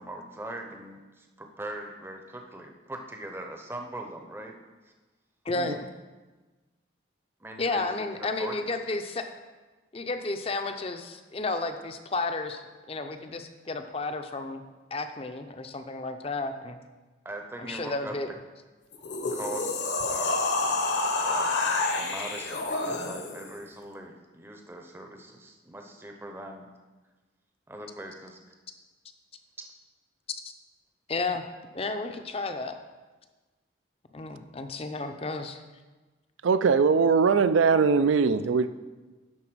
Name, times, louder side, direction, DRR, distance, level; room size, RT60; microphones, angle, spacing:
voice 1, 0.0-4.6 4.8-4.9 7.4-8.6 17.2-18.2 19.3-20.4 21.2-21.6 21.9-26.7 27.7-28.4 29.6-29.7, right 1 dB, 10° right, 3 dB, 0.6 m, -41 dB
voice 2, 5.4-5.9 7.6-9.3 9.9-12.6 12.9-14.6 14.9-16.8 17.6-18.3 31.1-31.5 31.7-32.7 34.1-35.6, left 3 dB, 30° left, 7 dB, 0.5 m, -32 dB
sound 1, 18.9-23.5, left 3 dB, 65° left, 1.0 m, -28 dB
voice 3, 36.4-38.7, right 5 dB, 85° right, 13 dB, 0.4 m, -21 dB
10.5 x 4.0 x 6.1 m, 1.3 s
head